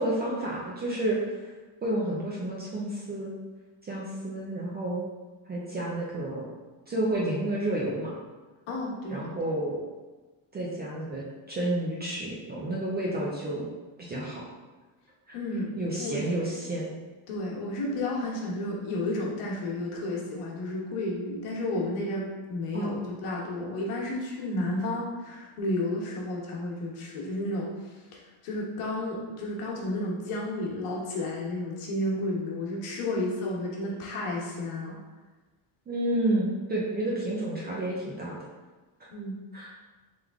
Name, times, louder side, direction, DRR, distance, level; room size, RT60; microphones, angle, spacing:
voice 1, 0.0-1.5 1.8-3.3 3.8-5.0 5.5-6.5 6.9-8.1 9.1-9.8 10.5-13.7 14.0-14.4 15.8-16.9 22.7-23.1 35.9-38.4 39.0-39.1 39.5-39.7, right 1 dB, 25° right, -5 dB, 0.3 m, -30 dB
voice 2, 8.7-9.3 15.3-16.2 17.3-27.7 28.1-35.0 39.1-39.4, left 1 dB, 85° left, -3 dB, 1.2 m, -32 dB
3.5 x 3.3 x 3.5 m, 1.2 s
cardioid pair, 175°, 50 cm